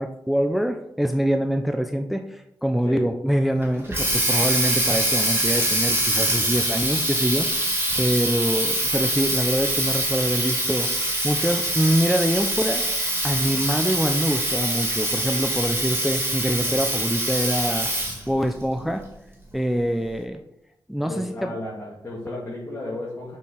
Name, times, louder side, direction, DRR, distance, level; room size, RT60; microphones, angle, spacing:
voice 1, 0.0-12.8 13.2-17.9 18.3-19.0 19.5-20.4 20.9-21.5, equal, ahead, 6 dB, 0.5 m, -25 dB
Water tap faucet, 3.6-18.3, right 1 dB, 30° right, 2.4 m, -24 dB
voice 2, 21.1-23.4, left 2 dB, 30° left, -7 dB, 2.1 m, -33 dB
6.9 x 4.4 x 4.9 m, 0.82 s
wide cardioid pair, 95°, 8 cm